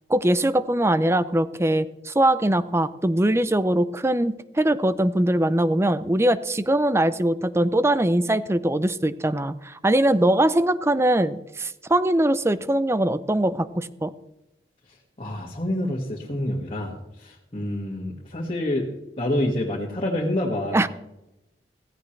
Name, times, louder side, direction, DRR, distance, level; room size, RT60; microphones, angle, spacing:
voice 1, 0.1-14.1 20.7-20.9, right 1 dB, 15° right, 14 dB, 0.6 m, -22 dB
voice 2, 14.9-18.9 19.2-20.8, left 1 dB, 35° left, -3 dB, 1.9 m, -27 dB
16.0 x 16.0 x 3.3 m, 0.93 s
head